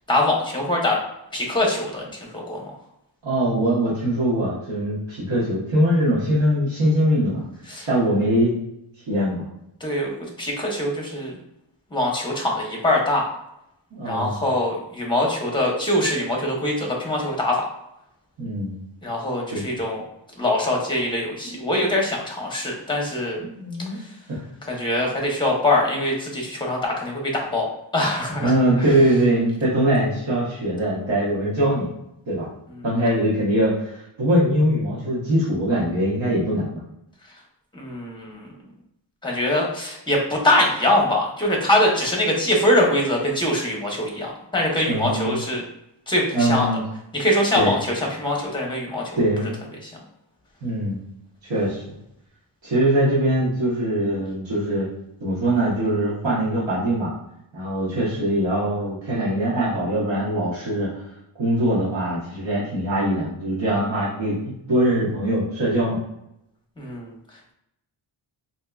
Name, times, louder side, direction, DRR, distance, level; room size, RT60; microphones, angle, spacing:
voice 1, 0.1-1.0 1.3-2.6 7.7-7.9 9.8-11.4 11.9-13.3 14.0-17.6 19.0-20.0 20.4-23.4 24.7-27.7 27.9-28.5 37.7-38.5 39.2-45.6 46.1-46.7 47.1-49.2 49.8-49.9 66.8-67.1, left 1 dB, 10° left, -1 dB, 0.8 m, -23 dB
voice 2, 3.2-7.4 7.9-8.5 9.1-9.5 13.9-14.4 18.4-18.8 19.5-19.7 21.5-21.6 23.4-24.0 24.3-24.4 28.4-31.9 32.3-32.5 32.8-36.8 44.9-45.4 46.3-46.8 47.5-47.8 49.2-49.5 50.6-51.0 51.4-51.8 52.6-54.9 55.2-57.1 57.5-60.9 61.3-66.0, right 1 dB, 75° right, -8 dB, 1.1 m, -22 dB
3.5 x 2.8 x 2.3 m, 0.82 s
wide cardioid pair, 135°, 45 cm